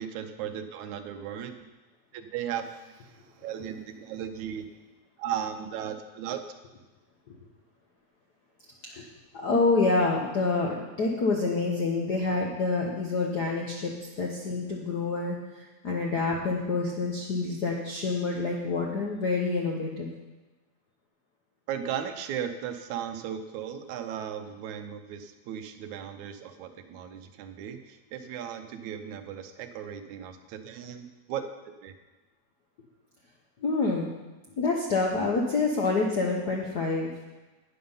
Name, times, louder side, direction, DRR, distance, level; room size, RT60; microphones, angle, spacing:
voice 1, 0.0-1.6 2.1-4.7 5.2-6.4 21.7-31.5 31.8-31.9, right 9 dB, 85° right, 8 dB, 2.2 m, -36 dB
voice 2, 9.3-20.1 33.6-34.1 34.6-37.1, left 3 dB, 65° left, -1 dB, 1.0 m, -27 dB
11.0 x 9.6 x 5.5 m, 1.1 s
omnidirectional pair, 3.3 m